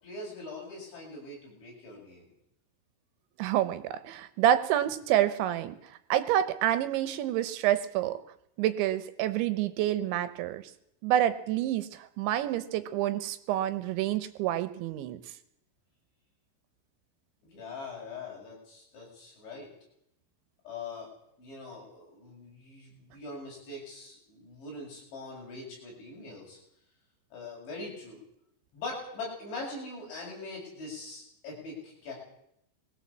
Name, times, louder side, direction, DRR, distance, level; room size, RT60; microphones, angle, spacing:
voice 1, 0.0-2.3 17.4-19.7 20.6-21.1 21.4-26.6 27.3-28.2 28.7-32.1, left 3 dB, 70° left, -3 dB, 9.6 m, -42 dB
voice 2, 3.4-8.2 8.6-10.7 11.0-15.2, right 12 dB, 80° right, 12 dB, 3.1 m, -28 dB
21.0 x 17.0 x 7.4 m, 0.77 s
omnidirectional pair, 5.5 m